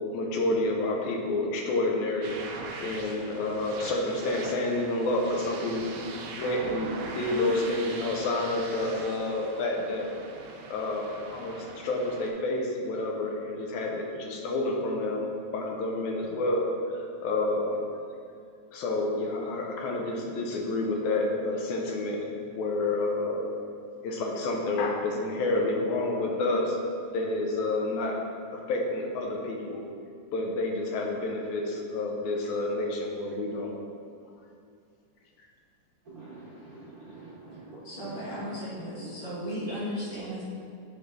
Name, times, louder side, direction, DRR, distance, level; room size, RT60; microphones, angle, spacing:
voice 1, 0.1-2.4 2.8-5.9 6.3-10.1 10.7-16.7 17.2-17.8 18.7-22.2 22.5-23.5 24.0-26.8 27.1-28.2 28.5-29.8 30.3-33.7, left 2 dB, 85° left, 0 dB, 2.1 m, -29 dB
sound 1, 2.2-12.3, right 4 dB, 90° right, 1.4 m, -41 dB
voice 2, 36.0-38.6 39.5-39.6, right 3 dB, 65° right, -11 dB, 0.9 m, -45 dB
voice 3, 37.8-40.4, equal, 60° left, -9 dB, 2.4 m, -35 dB
8.5 x 3.2 x 3.4 m, 2.4 s
omnidirectional pair, 3.4 m